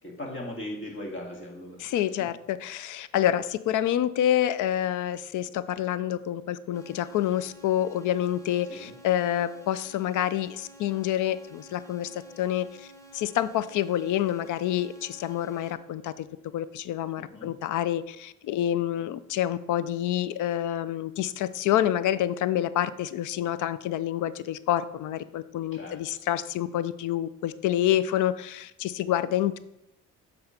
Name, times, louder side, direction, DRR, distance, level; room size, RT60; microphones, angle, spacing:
voice 1, 0.0-2.0 8.7-8.9 17.2-17.5 25.7-26.0, left 1 dB, 40° left, -1 dB, 2.3 m, -38 dB
voice 2, 1.8-12.9 13.1-16.3 16.5-29.6, left 11 dB, 80° left, 15 dB, 0.5 m, -28 dB
sound 1, 6.7-15.7, right 1 dB, 10° left, 1.4 m, -51 dB
7.9 x 3.8 x 5.8 m, 0.83 s
cardioid pair, 90°, 30 cm